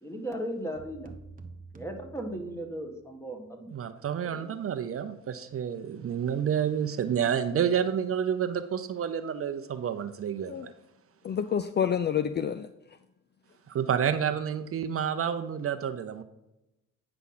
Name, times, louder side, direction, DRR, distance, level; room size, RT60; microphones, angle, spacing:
voice 1, 0.0-1.1 1.7-3.7 4.2-4.5, right 1 dB, 10° left, 1.7 m, -37 dB
sound 1, 0.7-3.0, right 3 dB, 25° right, 1.1 m, -48 dB
voice 2, 3.7-10.7 13.7-16.2, right 8 dB, 50° right, 0.7 m, -29 dB
voice 3, 11.2-12.7, left 8 dB, 35° left, 0.5 m, -28 dB
9.6 x 5.8 x 4.0 m
cardioid pair, 90°, 30 cm